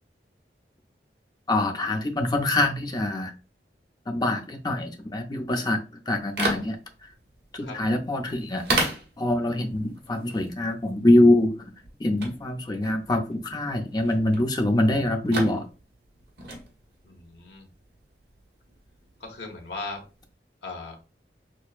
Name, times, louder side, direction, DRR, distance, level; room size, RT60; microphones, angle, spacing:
voice 1, 1.5-3.3 4.1-6.8 7.5-8.6 9.2-11.6 12.0-15.6, left 1 dB, 25° left, 4 dB, 0.6 m, -24 dB
sound 1, 6.1-20.3, right 2 dB, 60° right, 1.2 m, -36 dB
voice 2, 17.0-17.7 19.2-20.0 20.6-20.9, left 3 dB, 80° left, 1 dB, 1.1 m, -37 dB
6.1 x 2.1 x 2.4 m, 0.33 s
head